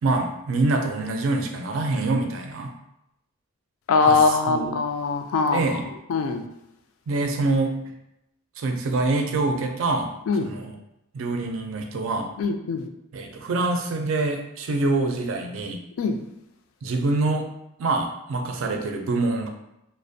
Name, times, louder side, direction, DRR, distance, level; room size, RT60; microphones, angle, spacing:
voice 1, 0.0-2.7 4.0-4.8 5.5-5.9 7.1-7.9 8.6-10.8 11.1-12.3 13.1-15.8 16.8-19.5, right 2 dB, 75° right, 4 dB, 0.4 m, -25 dB
voice 2, 3.9-5.6 6.1-6.4 10.3-10.5 12.4-12.9 16.0-16.2, left 4 dB, 85° left, 5 dB, 0.3 m, -22 dB
2.4 x 2.0 x 2.5 m, 0.84 s
head